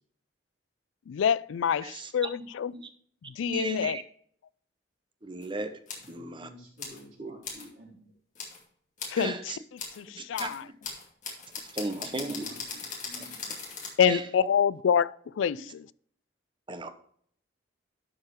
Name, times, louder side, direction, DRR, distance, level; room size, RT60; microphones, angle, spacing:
voice 1, 1.1-2.7 3.3-4.0 9.1-9.3 10.0-10.7 14.0-15.9, left 8 dB, 80° left, 0.3 m, -26 dB
voice 2, 1.8-2.5 2.7-2.8 3.5-4.0 5.2-5.7 6.1-6.5 7.2-7.3 9.2-9.6 10.1-10.7 11.7-12.5 14.1-14.2 15.6-15.7 16.7-16.9, right 2 dB, 25° right, 0.8 m, -35 dB
sound 1, 5.4-5.5 5.9-6.1 6.8-7.0 7.4-7.7 8.3-8.6 9.0-9.2 9.8-10.0 10.3-13.9, left 5 dB, 40° left, 2.5 m, -39 dB
voice 3, 6.1-8.1 11.9-13.5, equal, 80° right, 3.9 m, -50 dB
11.5 x 4.8 x 4.6 m
head